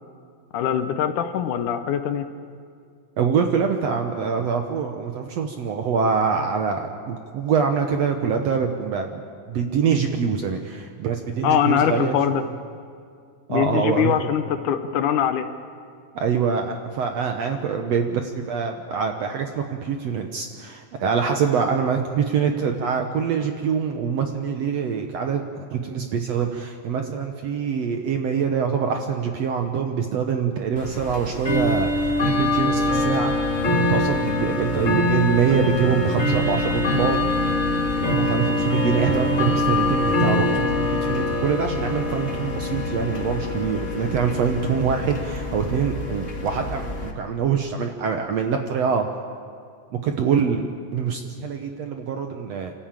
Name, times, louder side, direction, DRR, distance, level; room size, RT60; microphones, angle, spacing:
voice 1, 0.5-2.3 11.4-12.4 13.5-15.5, left 9 dB, 70° left, 9 dB, 2.1 m, -22 dB
voice 2, 3.2-9.2 9.5-12.4 13.5-14.3 16.1-33.3 33.8-37.3 38.0-49.1 50.0-50.7 50.9-52.7, right 6 dB, 65° right, 4 dB, 1.7 m, -24 dB
Bell / Tick-tock, 30.8-47.1, left 2 dB, 35° left, 1.3 m, -24 dB
29.0 x 13.5 x 8.9 m, 2.2 s
omnidirectional pair, 4.0 m